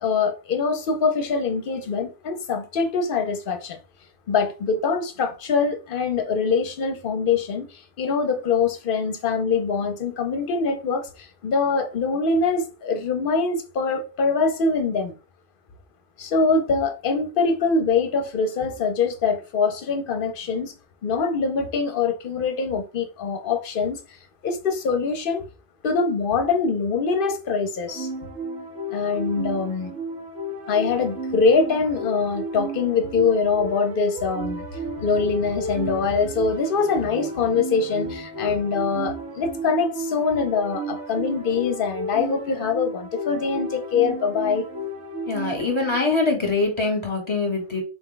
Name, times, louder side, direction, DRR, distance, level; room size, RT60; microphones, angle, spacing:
voice 1, 0.0-3.8 4.3-7.7 8.0-15.1 16.2-20.7 21.0-24.0 24.4-25.4 25.8-28.1 28.9-29.9 30.7-34.6 35.0-44.6 45.6-45.7, left 4 dB, 55° left, 0.8 m, -23 dB
sound 1, 27.9-46.0, right 1 dB, 75° right, 1.0 m, -33 dB
voice 2, 45.3-47.8, left 3 dB, 25° left, 1.1 m, -23 dB
4.2 x 2.2 x 3.8 m
omnidirectional pair, 1.2 m